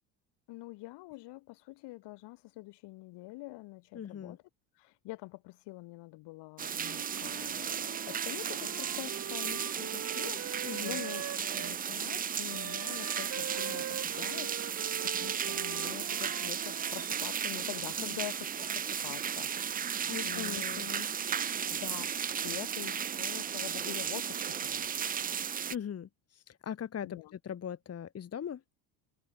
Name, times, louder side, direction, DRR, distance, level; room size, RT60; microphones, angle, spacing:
voice 1, 0.5-4.4 4.8-19.5 20.2-20.9 21.7-24.9 27.0-27.3, left 20 dB, 70° left, 3.9 m, -45 dB
voice 2, 3.9-4.4 10.6-11.0 18.0-18.2 20.1-21.1 25.7-28.6, left 8 dB, 35° left, 1.6 m, -40 dB
sound 1, 6.6-25.8, right 8 dB, 20° right, 0.5 m, -35 dB
Wind instrument woodwind instrument, 6.8-11.8 12.5-17.5, right 9 dB, 35° right, 1.5 m, -43 dB
supercardioid pair, 90°, 43 cm